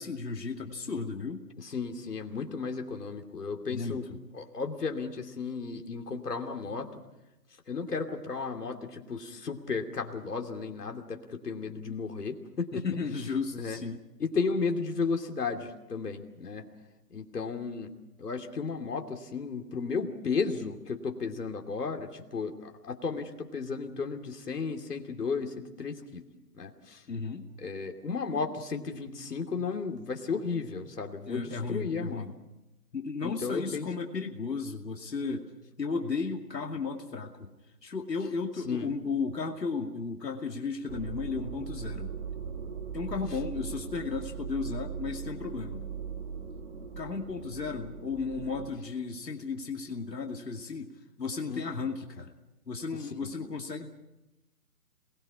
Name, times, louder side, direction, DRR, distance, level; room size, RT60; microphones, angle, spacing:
voice 1, 0.0-1.4 3.7-4.2 12.7-14.0 27.1-27.4 31.3-32.3 32.9-35.5 35.8-37.5 37.8-42.1 42.9-45.8 47.0-52.3 52.7-53.9, left 4 dB, 90° left, 2 dB, 2.5 m, -34 dB
voice 2, 1.6-4.1 4.3-7.0 7.7-12.8 13.5-13.8 14.2-16.7 17.1-17.9 18.2-26.2 26.5-27.0 27.6-32.3 33.2-33.9 38.6-38.9 51.5-51.6 52.9-53.3, left 4 dB, 70° left, 4 dB, 2.8 m, -34 dB
sound 1, 40.9-48.7, right 6 dB, 40° right, 1.9 m, -39 dB
27.5 x 20.5 x 6.0 m, 0.97 s
hypercardioid pair, 165°, 49 cm